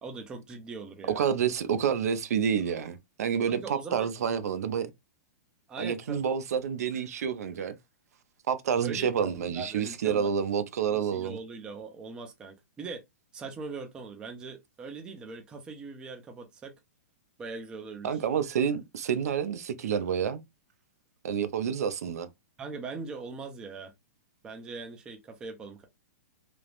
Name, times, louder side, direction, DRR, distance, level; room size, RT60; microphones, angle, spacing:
voice 1, 0.0-1.3 3.5-4.1 5.7-6.2 8.8-10.3 10.9-13.0 13.3-16.7 17.4-18.2 22.6-23.9 24.4-25.9, right 4 dB, 10° right, 0.4 m, -41 dB
voice 2, 1.1-4.9 5.8-7.8 8.5-11.4 18.0-20.4 21.2-22.3, right 7 dB, 75° right, 0.5 m, -28 dB
3.1 x 2.0 x 2.4 m
hypercardioid pair, 165°, 9 cm